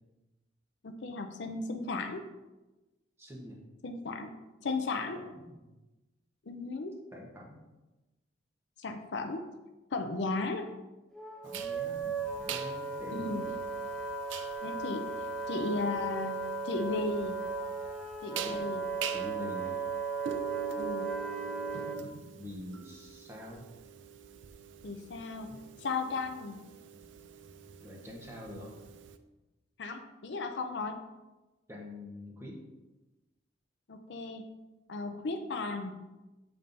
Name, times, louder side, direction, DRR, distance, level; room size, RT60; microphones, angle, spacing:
voice 1, 0.8-2.2 3.8-4.4 4.6-5.2 6.5-6.9 8.8-9.4 9.9-10.7 13.1-13.5 14.6-15.1 15.5-17.4 18.2-18.9 19.3-19.5 20.8-21.1 24.8-25.5 25.8-26.6 29.8-31.0 33.9-34.4 34.9-36.0, left 3 dB, 60° left, 6 dB, 0.5 m, -35 dB
voice 2, 3.2-3.6 5.0-5.7 7.1-7.6 11.4-13.3 18.4-18.7 19.1-19.8 21.1-21.6 22.4-23.7 25.5-25.6 27.8-28.7 31.7-32.6, left 1 dB, 15° right, -2 dB, 1.0 m, -46 dB
Wind instrument woodwind instrument, 11.1-22.0, right 4 dB, 5° left, 0.5 m, -36 dB
sound 1, 11.5-29.2, right 7 dB, 70° right, 0.4 m, -44 dB
7.1 x 5.3 x 2.6 m, 1.1 s
head